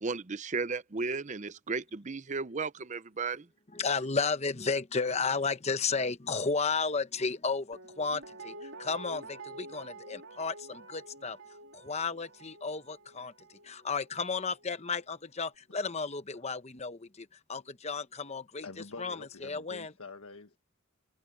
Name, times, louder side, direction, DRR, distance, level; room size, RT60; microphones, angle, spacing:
voice 1, 0.0-3.4, right 4 dB, 35° right, 0.7 m, -34 dB
voice 2, 3.7-11.4 11.7-18.7 19.0-19.9, left 4 dB, 30° left, 0.9 m, -33 dB
Guitar, 7.7-14.7 15.1-15.2, right 2 dB, 75° right, 3.4 m, -48 dB
voice 3, 18.6-20.6, left 3 dB, 85° left, 1.5 m, -46 dB
head